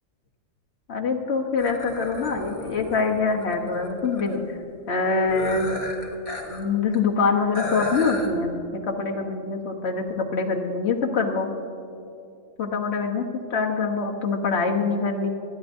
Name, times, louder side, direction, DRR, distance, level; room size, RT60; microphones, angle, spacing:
voice 1, 0.9-4.4 4.9-5.7 6.5-8.5 8.9-11.5 12.6-15.3, left 4 dB, 60° left, 1 dB, 1.3 m, -24 dB
sound 1, 1.6-4.4 5.3-6.6 6.9-7.0 7.5-8.3, left 1 dB, 30° left, 1.3 m, -33 dB
25.5 x 10.0 x 2.6 m, 2.5 s
omnidirectional pair, 1.3 m